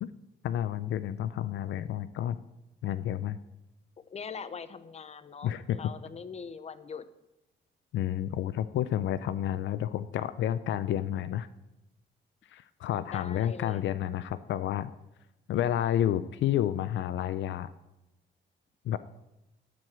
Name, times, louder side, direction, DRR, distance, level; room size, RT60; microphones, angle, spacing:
voice 1, 0.4-2.4 2.8-3.4 5.4-5.8 7.9-11.5 12.5-14.9 15.5-17.7 18.8-19.0, left 11 dB, 70° left, 14 dB, 0.5 m, -30 dB
voice 2, 4.0-7.1 13.1-13.8, left 6 dB, 35° left, 13 dB, 0.8 m, -42 dB
12.5 x 4.7 x 7.4 m, 0.96 s
cardioid pair, 90°, 20 cm